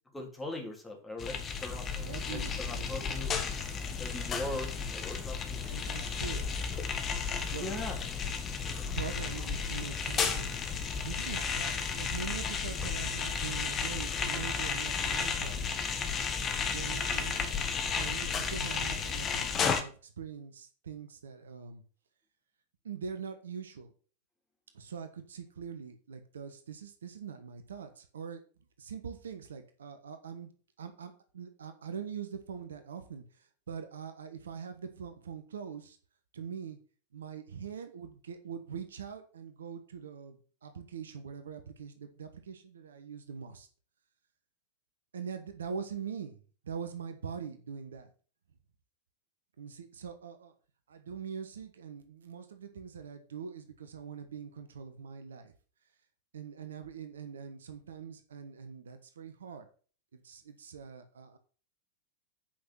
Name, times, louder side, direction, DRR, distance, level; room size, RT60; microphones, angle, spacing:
voice 1, 0.1-3.3 4.0-6.2 7.4-8.0, left 2 dB, 10° left, 0 dB, 3.1 m, -41 dB
sound 1, 1.2-19.8, left 6 dB, 25° left, 1.4 m, -33 dB
voice 2, 2.0-2.9 4.0-4.3 5.6-6.4 7.5-7.7 9.0-10.5 11.0-15.8 16.7-21.8 22.8-23.9 24.7-28.4 28.8-30.5 30.8-36.0 36.3-36.8 37.1-43.7 45.1-46.4 46.6-48.1 49.6-50.5 50.9-55.5 56.3-59.7 60.1-61.4, right 7 dB, 65° right, 8 dB, 1.2 m, -43 dB
8.5 x 5.8 x 5.7 m, 0.40 s
figure-of-eight pair, 90°, 0 cm